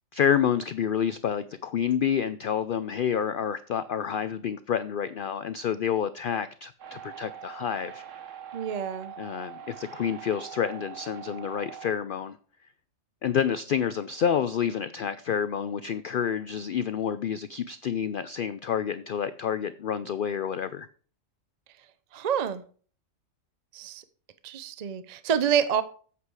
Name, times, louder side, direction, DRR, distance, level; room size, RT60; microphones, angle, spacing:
voice 1, 0.1-8.0 9.2-12.4 13.2-20.9, left 8 dB, 70° left, 0.5 m, -28 dB
sound 1, 6.8-11.9, right 8 dB, 70° right, 1.3 m, -43 dB
voice 2, 8.5-9.1 22.1-22.6 23.7-24.0 24.4-25.8, right 8 dB, 40° right, 0.6 m, -27 dB
8.3 x 7.8 x 4.7 m
omnidirectional pair, 1.4 m